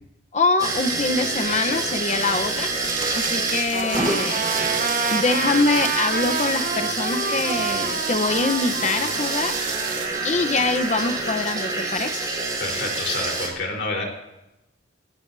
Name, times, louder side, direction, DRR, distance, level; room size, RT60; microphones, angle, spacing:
voice 1, 0.3-2.7 3.2-4.4 5.1-9.5 10.2-12.2, left 3 dB, 35° left, 8 dB, 1.0 m, -24 dB
sound 1, 0.6-13.5, right 3 dB, 20° right, 4.4 m, -27 dB
sound 2, 2.1-10.1, right 8 dB, 85° right, 2.9 m, -35 dB
Trumpet, 3.7-10.8, right 5 dB, 40° right, 1.0 m, -29 dB
voice 2, 12.6-14.0, left 3 dB, 60° left, 1 dB, 4.3 m, -28 dB
26.0 x 17.5 x 2.8 m, 0.95 s
head